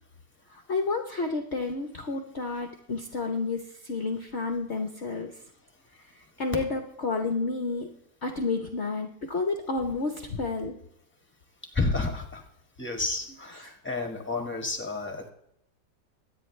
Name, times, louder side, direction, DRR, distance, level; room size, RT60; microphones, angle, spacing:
voice 1, 0.5-5.4 5.9-7.9 8.2-10.8, left 3 dB, 45° left, 4 dB, 1.1 m, -31 dB
voice 2, 11.7-12.4 12.8-15.3, left 3 dB, 5° left, 3 dB, 1.6 m, -30 dB
23.5 x 9.4 x 3.3 m, 0.77 s
omnidirectional pair, 1.9 m